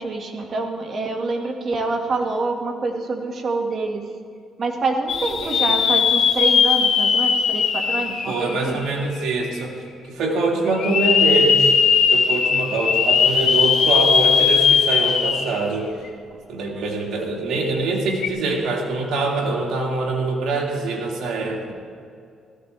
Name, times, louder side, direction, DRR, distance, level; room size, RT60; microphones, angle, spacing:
voice 1, 0.0-4.0 4.6-8.8, right 3 dB, 50° right, 3 dB, 1.8 m, -26 dB
sound 1, 5.1-9.0 9.6-9.7 10.7-15.7 16.1-16.2 18.1-18.3, left 6 dB, 65° left, 1.1 m, -18 dB
voice 2, 5.4-5.8 8.3-11.7 12.1-15.9 16.5-21.7, right 3 dB, 75° right, -1 dB, 2.4 m, -24 dB
17.0 x 14.5 x 3.4 m, 2.3 s
cardioid pair, 90°, 0 cm